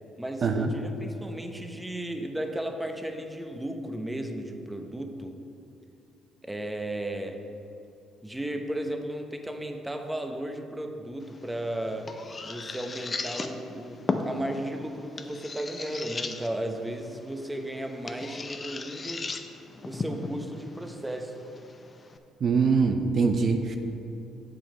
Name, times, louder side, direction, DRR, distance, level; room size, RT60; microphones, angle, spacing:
voice 1, 0.2-5.4 6.4-7.4 8.2-12.1 12.4-19.2 19.8-21.3, right 1 dB, 10° right, 4 dB, 1.0 m, -35 dB
sound 1, 11.2-22.2, left 3 dB, 35° left, 0.7 m, -37 dB
voice 2, 22.4-23.8, right 5 dB, 50° right, 5 dB, 0.6 m, -23 dB
7.7 x 7.1 x 5.5 m, 2.8 s
supercardioid pair, 75°, 0 cm